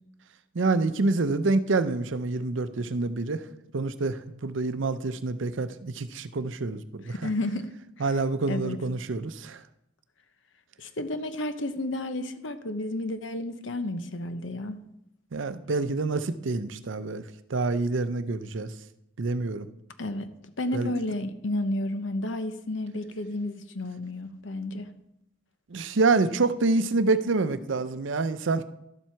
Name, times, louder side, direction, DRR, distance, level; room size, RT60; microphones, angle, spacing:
voice 1, 0.5-3.5 3.7-7.3 8.0-9.6 15.3-18.7 19.2-19.7 20.7-20.9 25.7-28.6, right 3 dB, 70° right, 12 dB, 0.6 m, -27 dB
voice 2, 7.1-7.7 8.5-8.8 10.8-14.8 20.0-20.3 20.6-24.9, left 1 dB, 65° left, 10 dB, 0.9 m, -31 dB
12.0 x 7.5 x 4.5 m, 0.82 s
head